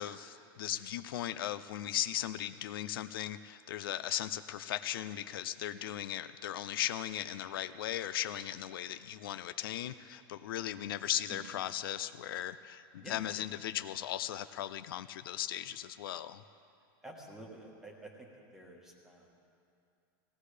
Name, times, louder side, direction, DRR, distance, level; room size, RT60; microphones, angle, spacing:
voice 1, 0.0-16.4, left 12 dB, 65° left, 12 dB, 0.4 m, -37 dB
voice 2, 17.0-18.1 18.5-19.3, right 1 dB, 5° right, -1 dB, 1.3 m, -49 dB
20.0 x 17.0 x 3.3 m, 2.5 s
supercardioid pair, 180°, 13 cm